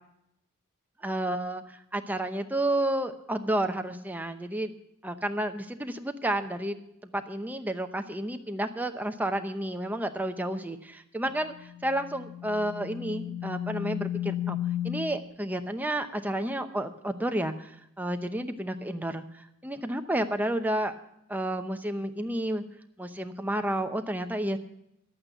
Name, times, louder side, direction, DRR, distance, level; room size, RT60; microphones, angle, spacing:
voice 1, 1.0-4.7 5.0-14.6 14.8-20.9 21.3-22.6 23.0-24.6, right 1 dB, 10° right, 7 dB, 0.7 m, -31 dB
sound 1, 11.3-15.2, left 11 dB, 80° left, 0.7 m, -34 dB
12.0 x 8.7 x 7.7 m, 0.79 s
head